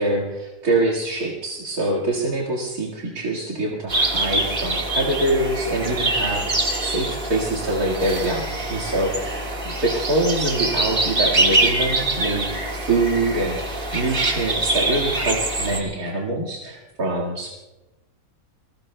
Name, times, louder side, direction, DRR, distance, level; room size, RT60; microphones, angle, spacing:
voice 1, 0.0-17.5, right 2 dB, 80° right, -2 dB, 2.5 m, -25 dB
sound 1, 3.9-15.8, right 2 dB, 40° right, 1.9 m, -24 dB
28.0 x 20.5 x 2.2 m, 1.0 s
omnidirectional pair, 1.5 m